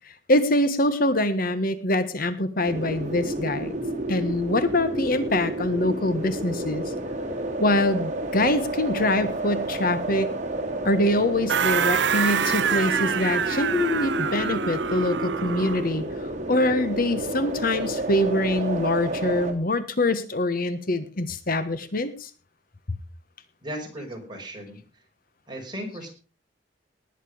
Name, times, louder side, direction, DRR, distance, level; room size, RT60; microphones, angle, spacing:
voice 1, 0.3-3.8 4.1-6.8 7.6-10.3 10.8-22.3, left 1 dB, 55° left, 12 dB, 1.3 m, -24 dB
sound 1, 2.6-19.5, right 1 dB, 45° right, 3.3 m, -31 dB
sound 2, 11.5-15.9, right 7 dB, 75° right, 0.6 m, -26 dB
voice 2, 23.6-25.0 25.5-26.1, right 1 dB, 25° right, 1 dB, 5.4 m, -36 dB
19.5 x 9.3 x 5.0 m, 0.35 s
head